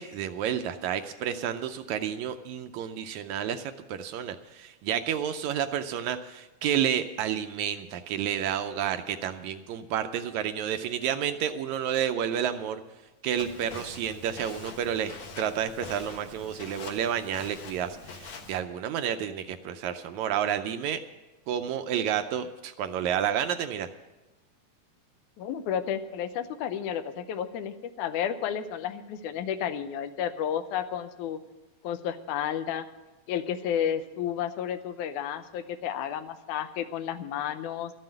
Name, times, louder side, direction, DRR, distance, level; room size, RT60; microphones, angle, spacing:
voice 1, 0.0-12.8 13.2-21.0 21.5-23.9, right 9 dB, 75° right, 8 dB, 1.8 m, -30 dB
Walk footsteps, 13.4-18.6, left 4 dB, 60° left, 2.3 m, -44 dB
voice 2, 25.4-31.4 31.8-32.9 33.3-37.9, left 9 dB, 80° left, 11 dB, 2.1 m, -32 dB
13.0 x 7.6 x 9.0 m, 1.1 s
omnidirectional pair, 3.6 m